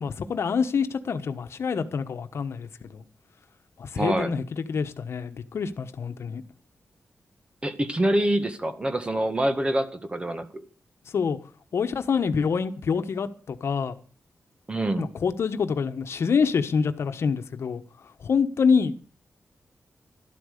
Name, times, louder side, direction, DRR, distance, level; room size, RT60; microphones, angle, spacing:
voice 1, 0.0-3.0 3.8-6.4 11.1-11.4 11.7-14.0 15.0-17.8 18.2-18.9, left 5 dB, 70° left, 1.2 m, -26 dB
voice 2, 4.0-4.3 7.6-10.5 14.7-15.1, right 1 dB, 25° right, 1.7 m, -25 dB
13.0 x 12.5 x 6.7 m
wide cardioid pair, 125°, 5 cm